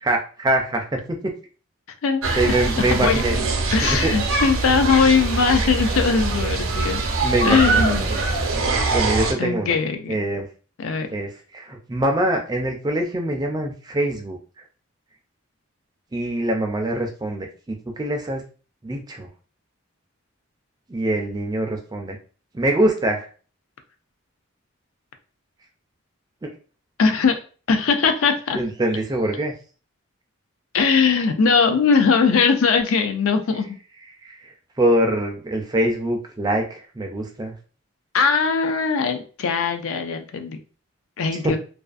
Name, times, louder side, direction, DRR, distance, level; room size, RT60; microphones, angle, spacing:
voice 1, 0.0-1.3 2.4-3.4 3.8-4.1 7.2-8.3 8.9-9.8 10.1-10.5 11.1-14.4 16.1-18.5 18.8-19.3 20.9-22.2 22.5-23.3 26.4-26.5 28.5-29.5 34.2-37.5 41.4-41.6, right 1 dB, 20° right, 3 dB, 0.3 m, -24 dB
voice 2, 2.0-2.5 2.9-3.2 3.7-7.0 7.4-8.1 9.4-10.2 10.8-11.1 27.0-27.4 27.7-28.6 30.7-33.8 38.1-40.6 41.2-41.6, left 5 dB, 75° left, 7 dB, 0.4 m, -20 dB
sound 1, 2.2-9.3, right 3 dB, 70° right, 0.5 m, -23 dB
2.4 x 2.4 x 2.3 m, 0.38 s
head